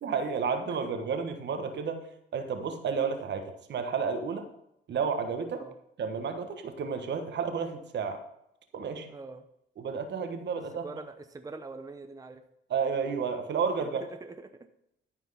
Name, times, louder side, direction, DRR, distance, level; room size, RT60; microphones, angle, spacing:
voice 1, 0.0-2.1 2.3-4.4 4.9-5.6 6.0-8.2 8.7-9.1 9.8-10.8 12.7-14.0, right 6 dB, 60° right, 7 dB, 1.4 m, -31 dB
voice 2, 9.1-9.4 10.8-12.4 13.9-14.5, right 3 dB, 15° right, 7 dB, 0.8 m, -43 dB
13.0 x 4.6 x 5.7 m, 0.78 s
cardioid pair, 90°, 20 cm